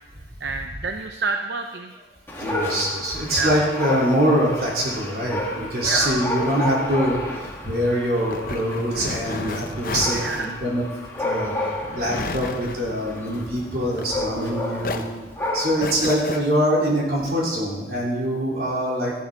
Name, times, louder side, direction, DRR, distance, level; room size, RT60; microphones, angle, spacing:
voice 1, 0.4-1.9 3.3-3.7 5.9-6.2 10.1-10.6, right 4 dB, 80° right, 5 dB, 0.6 m, -28 dB
Dog, 2.3-16.0, left 1 dB, 15° left, 1.7 m, -31 dB
voice 2, 2.4-10.8 11.2-11.7 11.9-15.0 15.5-19.1, equal, 60° right, -4 dB, 3.6 m, -24 dB
sound 1, 5.4-14.5 14.8-16.4, left 3 dB, 50° left, 0.7 m, -34 dB
14.0 x 11.0 x 3.8 m, 1.1 s
head